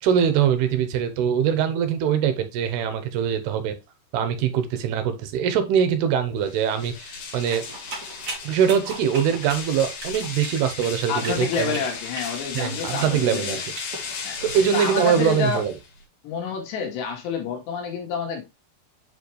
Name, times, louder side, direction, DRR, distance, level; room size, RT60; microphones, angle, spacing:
voice 1, 0.0-3.8 4.1-7.6 8.4-11.8 12.5-13.6 14.4-15.7, right 8 dB, 80° right, 2.8 m, -23 dB
sound 1, 6.4-16.0, left 5 dB, 65° left, 3.4 m, -35 dB
sound 2, 7.5-14.6, right 2 dB, 35° right, 1.9 m, -38 dB
voice 2, 11.1-13.6 14.2-14.4 14.7-15.6 16.2-18.4, left 6 dB, 85° left, 3.9 m, -28 dB
7.5 x 4.8 x 3.2 m
omnidirectional pair, 4.8 m